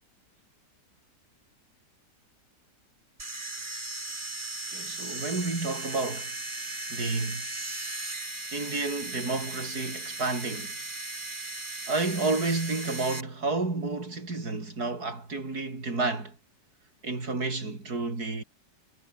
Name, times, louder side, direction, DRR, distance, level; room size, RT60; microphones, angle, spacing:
sound 1, 3.2-13.2, right 2 dB, 25° right, 3.6 m, -37 dB
voice 1, 4.7-6.4 6.9-7.5 8.5-10.8 11.9-16.4 17.0-18.4, right 3 dB, 60° right, 5.0 m, -30 dB
omnidirectional pair, 1.9 m